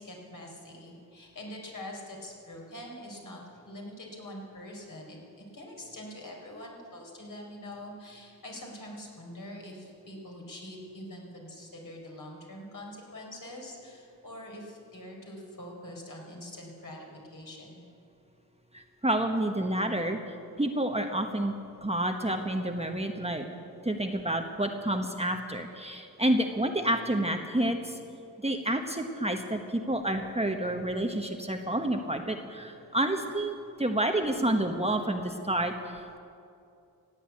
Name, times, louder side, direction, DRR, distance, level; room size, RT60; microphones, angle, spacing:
voice 1, 0.0-5.2 5.5-17.8, left 1 dB, 55° left, -1 dB, 4.4 m, -44 dB
voice 2, 18.7-20.2 20.6-21.6 21.8-23.5 23.8-28.0 28.4-36.2, right 1 dB, 15° right, 4 dB, 1.2 m, -29 dB
16.0 x 8.5 x 8.5 m, 2.6 s
cardioid pair, 50°, 37 cm